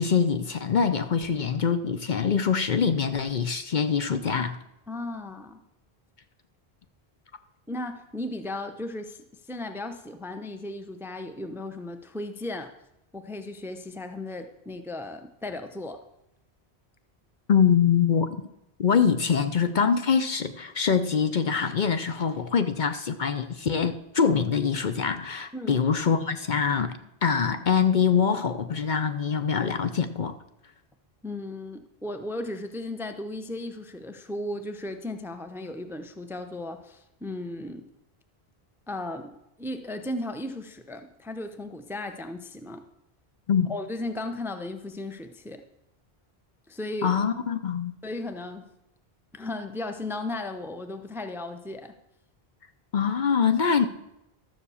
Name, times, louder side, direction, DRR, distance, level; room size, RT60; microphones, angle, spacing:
voice 1, 0.0-4.6 17.5-18.4 18.8-30.4 43.5-43.7 47.0-48.0 52.9-53.9, left 6 dB, 55° left, 10 dB, 0.8 m, -24 dB
voice 2, 4.9-5.6 7.7-12.7 13.1-16.0 25.5-25.8 31.2-37.9 38.9-42.9 43.7-45.6 46.7-47.2 48.0-48.7 49.3-52.0, left 2 dB, 5° right, 8 dB, 0.6 m, -36 dB
12.5 x 7.3 x 7.0 m, 0.86 s
omnidirectional pair, 1.0 m